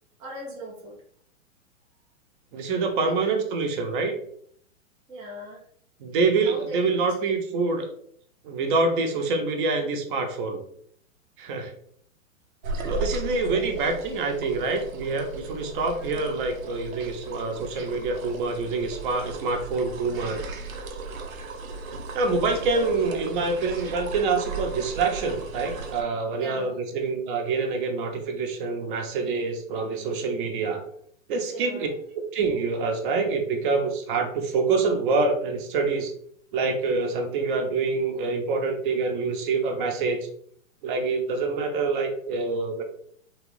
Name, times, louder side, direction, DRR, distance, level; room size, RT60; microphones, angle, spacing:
voice 1, 0.2-1.0 3.0-3.2 5.1-5.6 6.4-6.9 15.8-16.2 22.5-22.9 26.3-26.7 31.5-31.9, right 1 dB, 10° right, -4 dB, 0.4 m, -39 dB
voice 2, 2.5-4.1 6.0-7.9 8.4-10.6 11.4-11.7 12.8-20.4 22.1-30.8 31.3-31.9 32.3-36.1 36.5-40.2 40.8-42.8, right 4 dB, 40° right, 4 dB, 0.7 m, -26 dB
sound 1, 12.6-26.0, right 3 dB, 85° right, 0.7 m, -36 dB
3.1 x 2.6 x 3.1 m, 0.63 s
hypercardioid pair, 115°, 40 cm